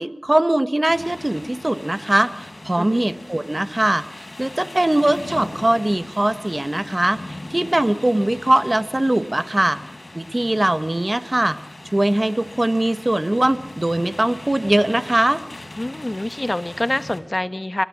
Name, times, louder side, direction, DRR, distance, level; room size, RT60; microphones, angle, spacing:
voice 1, 0.0-7.2 7.5-9.8 10.1-11.6 11.9-15.4, right 1 dB, 30° right, 11 dB, 1.4 m, -21 dB
sound 1, 0.9-17.2, left 1 dB, 50° left, 5.0 m, -39 dB
voice 2, 15.8-17.8, left 1 dB, 30° left, 12 dB, 1.2 m, -26 dB
29.5 x 16.0 x 8.8 m, 0.98 s
wide cardioid pair, 40°, 0 cm